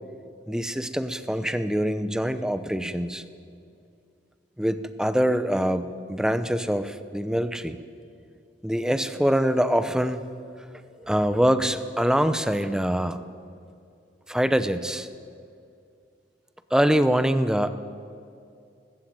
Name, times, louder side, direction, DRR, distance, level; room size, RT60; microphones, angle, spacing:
voice 1, 0.5-3.2 4.6-7.8 8.6-10.2 11.0-13.2 14.3-15.1 16.7-17.8, equal, 5° right, 12 dB, 0.8 m, -24 dB
19.5 x 16.0 x 8.9 m, 2.4 s
head